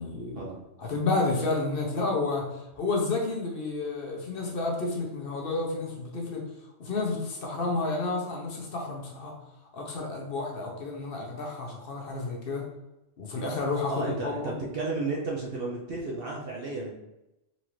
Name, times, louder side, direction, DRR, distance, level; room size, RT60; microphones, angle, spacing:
voice 1, 0.0-0.5 0.8-6.4 6.8-9.3 9.7-12.7 13.2-14.5, left 3 dB, 55° left, 0 dB, 0.8 m, -30 dB
voice 2, 13.9-16.9, right 3 dB, 55° right, -3 dB, 0.8 m, -33 dB
4.0 x 2.5 x 3.0 m, 0.93 s
omnidirectional pair, 1.3 m